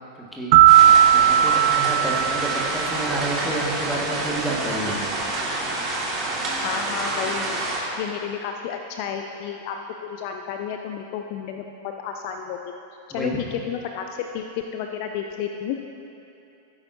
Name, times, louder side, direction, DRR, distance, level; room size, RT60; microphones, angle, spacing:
sound 1, 0.5-3.3, right 11 dB, 45° right, 0.6 m, -16 dB
sound 2, 0.7-7.8, right 2 dB, 25° right, 2.0 m, -28 dB
voice 1, 1.1-5.1 13.1-13.3, right 1 dB, 5° left, -4 dB, 1.8 m, -29 dB
voice 2, 6.6-7.6 8.0-9.8 10.0-11.6 12.0-12.6 13.1-15.8, left 8 dB, 45° left, 5 dB, 0.5 m, -31 dB
16.0 x 8.7 x 2.7 m, 2.8 s
figure-of-eight pair, 90°, 0 cm